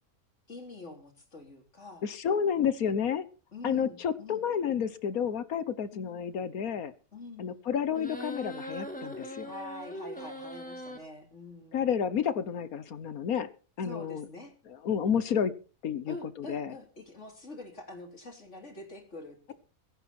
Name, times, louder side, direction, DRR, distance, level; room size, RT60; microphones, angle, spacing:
voice 1, 0.5-2.0 3.5-4.5 5.9-6.3 7.1-7.5 9.5-11.9 13.8-14.5 16.1-19.5, left 2 dB, 50° left, 3 dB, 4.0 m, -45 dB
voice 2, 2.0-3.2 3.6-6.9 7.4-9.5 11.7-13.5 13.8-14.3 14.8-15.5 15.8-16.7, left 7 dB, 70° left, 15 dB, 1.5 m, -30 dB
sound 1, 7.9-11.0, equal, 5° left, 2.7 m, -41 dB
22.0 x 9.9 x 4.4 m, 0.37 s
omnidirectional pair, 1.6 m